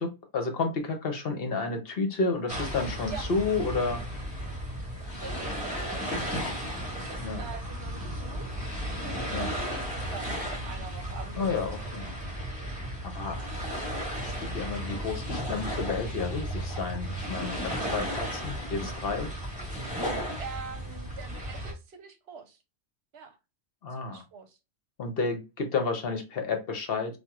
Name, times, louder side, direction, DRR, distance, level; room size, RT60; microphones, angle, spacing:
voice 1, 0.0-4.0 7.2-7.4 9.3-9.5 11.4-12.0 13.0-13.4 14.1-19.3 23.8-24.2 25.0-27.2, left 4 dB, 60° left, 0.9 m, -31 dB
sound 1, 2.5-21.7, equal, 5° right, 1.6 m, -34 dB
voice 2, 5.1-6.4 6.9-8.5 9.0-11.6 20.4-22.6 23.1-23.4 23.9-24.6, right 5 dB, 65° right, 0.9 m, -44 dB
4.3 x 2.3 x 2.3 m
omnidirectional pair, 1.2 m